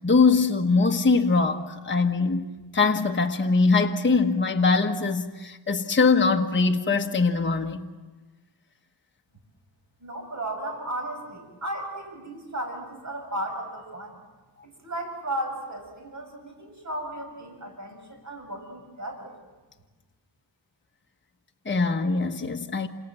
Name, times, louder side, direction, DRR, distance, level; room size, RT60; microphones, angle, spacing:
voice 1, 0.0-2.5 2.7-7.9 21.6-22.9, left 4 dB, 25° left, 1.3 m, -22 dB
voice 2, 10.0-14.2 14.6-19.3, right 1 dB, 40° right, 7.1 m, -35 dB
28.5 x 27.5 x 7.6 m
wide cardioid pair, 105°, 44 cm